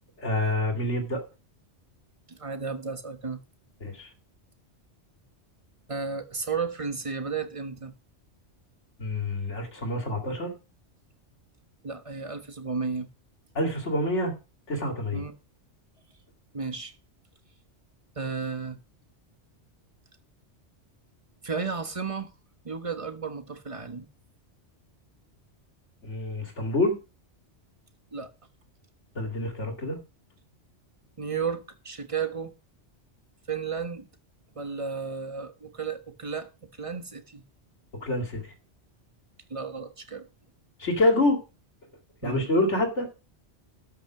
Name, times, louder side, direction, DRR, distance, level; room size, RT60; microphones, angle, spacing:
voice 1, 0.2-1.2 3.8-4.1 9.0-10.5 13.5-14.3 14.7-15.2 26.0-27.0 29.2-30.0 38.0-38.5 40.8-41.4 42.2-43.1, left 1 dB, 80° left, 2.6 m, -27 dB
voice 2, 2.3-3.4 5.9-7.9 11.8-13.1 15.1-15.3 16.5-16.9 18.2-18.8 21.4-22.3 22.6-24.1 28.1-28.3 31.2-32.5 33.5-34.1 34.5-36.5 36.8-37.4 39.5-40.2 42.2-42.5, right 5 dB, 30° right, 1.3 m, -33 dB
12.5 x 5.8 x 6.1 m
omnidirectional pair, 1.2 m